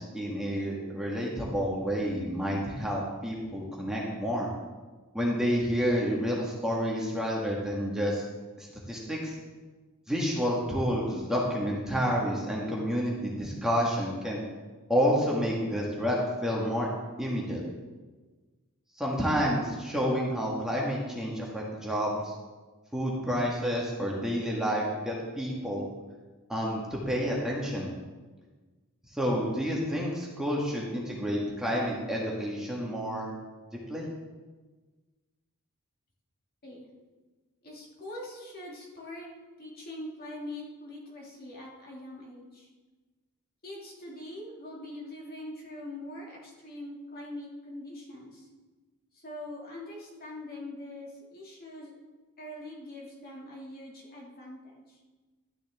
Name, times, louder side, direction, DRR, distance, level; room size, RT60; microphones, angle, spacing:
voice 1, 0.0-4.5 5.1-8.2 8.6-9.3 10.1-14.4 14.9-16.9 17.2-17.6 19.0-22.3 22.9-25.8 26.5-27.9 29.1-33.3 33.9-34.1, equal, 5° right, -4 dB, 1.6 m, -29 dB
voice 2, 37.6-39.3 39.6-42.7 43.6-48.5 49.1-51.9 52.4-55.0, left 1 dB, 45° left, -3 dB, 2.4 m, -43 dB
12.5 x 9.8 x 3.6 m, 1.3 s
head